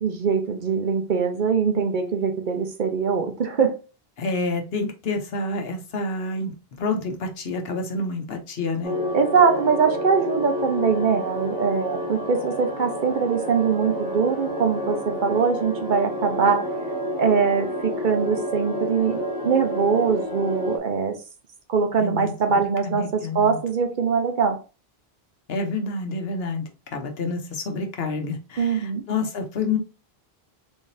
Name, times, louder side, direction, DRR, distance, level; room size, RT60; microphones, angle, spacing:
voice 1, 0.0-3.8 9.1-16.7 17.2-21.2 21.7-24.6 28.6-29.0, right 6 dB, 55° right, 0.8 m, -22 dB
voice 2, 4.2-8.9 22.0-23.6 25.5-29.8, left 3 dB, 75° left, 1.1 m, -28 dB
sound 1, 8.8-20.8, equal, 60° left, 1.6 m, -29 dB
3.6 x 3.6 x 2.6 m
omnidirectional pair, 1.0 m